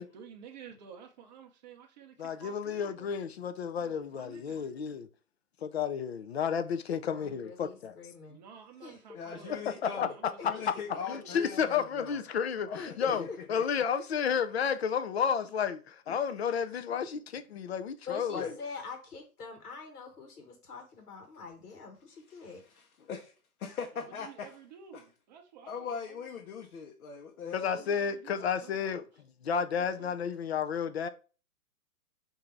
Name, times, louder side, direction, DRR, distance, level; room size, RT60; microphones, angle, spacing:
voice 1, 0.0-3.1 3.8-4.7 8.3-10.7 10.9-11.4 24.0-26.3 27.8-29.0 30.0-30.1, right 7 dB, 30° right, 0.6 m, -52 dB
voice 2, 2.2-5.1 5.6-8.0 9.8-10.1 10.4-10.5 11.1-18.4 27.5-29.1 29.4-31.1, left 7 dB, 45° left, 0.4 m, -32 dB
voice 3, 7.1-8.4 8.8-9.2 10.4-10.5 12.8-13.4 18.1-22.6, left 4 dB, 85° left, 1.2 m, -44 dB
voice 4, 9.1-10.1 10.4-12.2 12.7-13.6 16.1-16.2 18.3-18.6 22.3-23.3 23.6-24.6 24.9-25.0 25.6-27.9, left 6 dB, 65° left, 0.9 m, -41 dB
3.9 x 2.7 x 4.4 m
hypercardioid pair, 140°, 45 cm